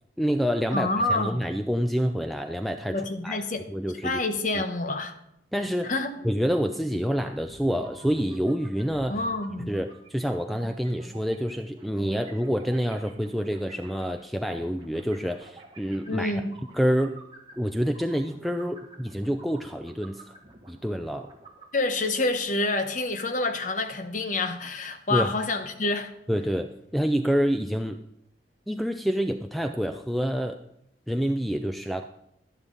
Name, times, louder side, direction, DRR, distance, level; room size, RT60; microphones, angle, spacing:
voice 1, 0.2-3.4 3.7-4.2 4.5-4.6 5.5-5.9 6.2-9.2 9.7-16.3 16.7-17.2 17.6-20.2 20.7-21.3 25.1-25.3 26.3-28.0 28.7-30.6 31.1-32.1, equal, ahead, 0.4 m, -27 dB
voice 2, 0.7-1.4 2.9-3.6 4.0-5.1 5.8-6.2 9.1-9.7 16.1-16.5 21.7-26.1, left 2 dB, 45° left, 1.0 m, -27 dB
sound 1, 7.5-21.7, right 1 dB, 25° right, 1.5 m, -50 dB
11.5 x 11.0 x 3.9 m
head